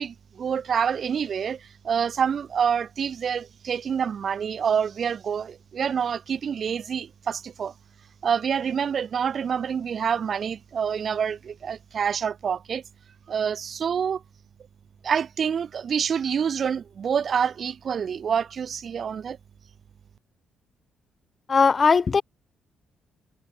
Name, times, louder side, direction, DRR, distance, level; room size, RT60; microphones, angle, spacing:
voice 1, 0.0-7.7 8.2-12.8 13.3-14.2 15.0-19.4, right 7 dB, 50° right, 1.8 m, -27 dB
voice 2, 21.5-22.2, left 5 dB, 35° left, 0.4 m, -18 dB
cardioid pair, 90°, 0 cm